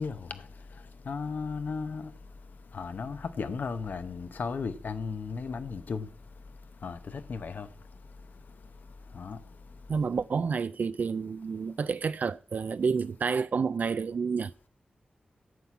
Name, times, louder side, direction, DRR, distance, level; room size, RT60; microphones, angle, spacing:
voice 1, 0.0-9.9, left 5 dB, 75° left, 0.9 m, -37 dB
voice 2, 9.9-14.5, right 5 dB, 65° right, 0.4 m, -29 dB
9.4 x 6.0 x 8.3 m
wide cardioid pair, 95°, 3 cm